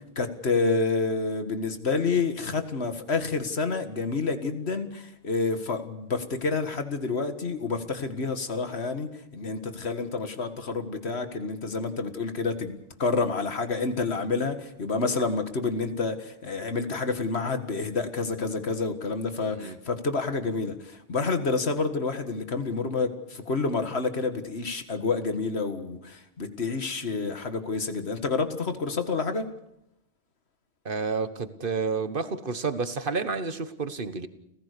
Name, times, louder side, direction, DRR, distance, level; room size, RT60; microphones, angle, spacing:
voice 1, 0.0-29.5, left 4 dB, 90° left, 8 dB, 2.1 m, -29 dB
voice 2, 19.4-19.8 30.8-34.3, right 4 dB, 55° right, 12 dB, 1.5 m, -30 dB
29.5 x 15.5 x 6.8 m, 0.82 s
omnidirectional pair, 1.1 m